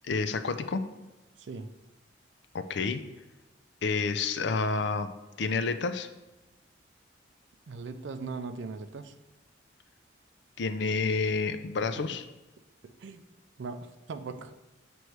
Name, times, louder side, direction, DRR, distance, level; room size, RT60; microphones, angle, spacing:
voice 1, 0.0-0.8 2.5-3.0 3.8-5.1 5.4-6.1 10.6-12.2, left 4 dB, 60° left, 10 dB, 0.4 m, -29 dB
voice 2, 1.4-1.7 7.7-9.1 11.5-11.6 12.0-12.1 12.8-13.2 13.6-14.5, right 4 dB, 65° right, 9 dB, 0.4 m, -39 dB
7.8 x 3.1 x 4.6 m, 1.1 s
head